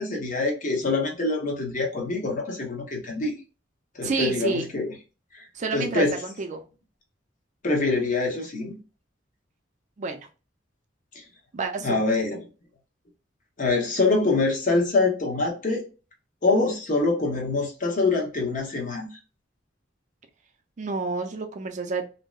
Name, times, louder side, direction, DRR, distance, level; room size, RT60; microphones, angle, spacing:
voice 1, 0.0-3.3 3.9-4.9 5.3-5.4 5.7-6.2 7.6-8.7 11.8-12.4 13.6-15.8 16.4-19.2, left 3 dB, 45° left, 0.8 m, -25 dB
voice 2, 4.0-4.7 5.5-6.6 10.0-10.3 11.5-12.0 20.8-22.1, right 3 dB, 40° right, 0.4 m, -29 dB
2.7 x 2.0 x 2.3 m
head